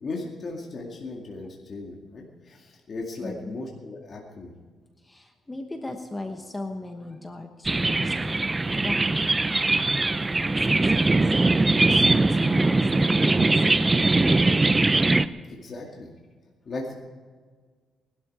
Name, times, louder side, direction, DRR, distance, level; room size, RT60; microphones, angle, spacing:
voice 1, 0.0-4.5 15.5-16.2 16.7-16.9, left 3 dB, 40° left, -1 dB, 2.2 m, -37 dB
voice 2, 3.2-3.6 5.0-8.4 8.7-9.8 10.4-14.4, left 2 dB, 15° left, 4 dB, 1.2 m, -39 dB
sound 1, 7.7-15.3, right 2 dB, 15° right, 0.5 m, -21 dB
20.5 x 12.5 x 4.9 m, 1.5 s
cardioid pair, 140°, 0 cm